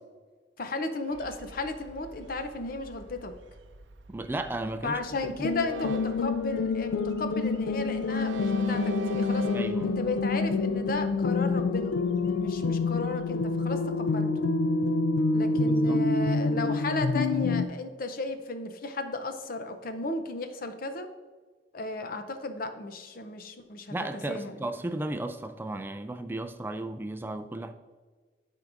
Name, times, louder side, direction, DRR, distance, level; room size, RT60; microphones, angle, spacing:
voice 1, 0.6-3.3 4.8-9.5 9.8-12.0 12.3-14.3 15.3-21.1 21.7-23.9 24.3-24.7, left 2 dB, 50° left, 8 dB, 0.6 m, -34 dB
Train, 1.1-14.1, right 3 dB, 80° right, 0.5 m, -44 dB
voice 2, 4.1-5.5 5.8-5.9 9.5-9.9 15.6-16.1 23.9-27.7, right 2 dB, 10° right, 8 dB, 0.3 m, -35 dB
sound 1, 5.4-17.7, left 3 dB, 90° left, 0.3 m, -27 dB
12.0 x 4.6 x 2.5 m, 1.4 s
head